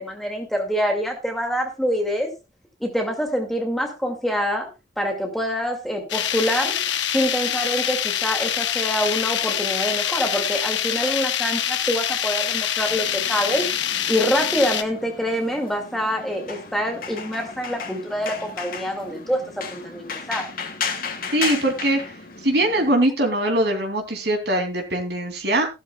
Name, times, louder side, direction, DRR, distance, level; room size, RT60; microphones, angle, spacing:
voice 1, 0.0-2.3 2.8-4.7 5.0-6.8 7.1-13.7 14.1-20.5, equal, ahead, 2 dB, 2.1 m, -25 dB
sound 1, 6.1-14.8, left 10 dB, 80° left, 1.0 m, -25 dB
sound 2, 12.9-22.9, left 5 dB, 50° left, 1.6 m, -35 dB
voice 2, 21.3-22.0 22.4-25.7, right 1 dB, 65° right, 4 dB, 2.8 m, -21 dB
15.0 x 12.5 x 2.3 m, 0.27 s
head